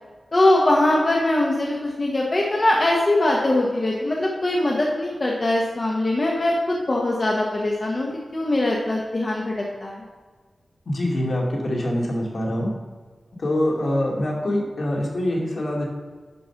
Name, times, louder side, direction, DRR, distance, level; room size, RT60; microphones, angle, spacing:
voice 1, 0.3-9.5 9.8-10.0, left 1 dB, 40° left, -2 dB, 1.4 m, -21 dB
voice 2, 10.9-12.7 13.4-15.8, left 1 dB, 65° left, -2 dB, 2.6 m, -24 dB
11.0 x 5.3 x 5.9 m, 1.4 s
wide cardioid pair, 110°, 0 cm